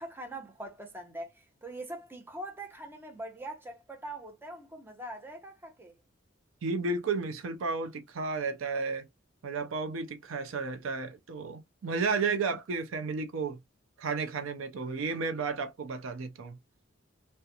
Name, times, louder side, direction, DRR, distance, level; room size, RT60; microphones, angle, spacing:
voice 1, 0.0-5.9, right 1 dB, 10° right, 0.6 m, -42 dB
voice 2, 6.6-9.1 9.4-13.6 14.0-16.6, right 4 dB, 90° right, 0.5 m, -32 dB
2.4 x 2.2 x 2.7 m
head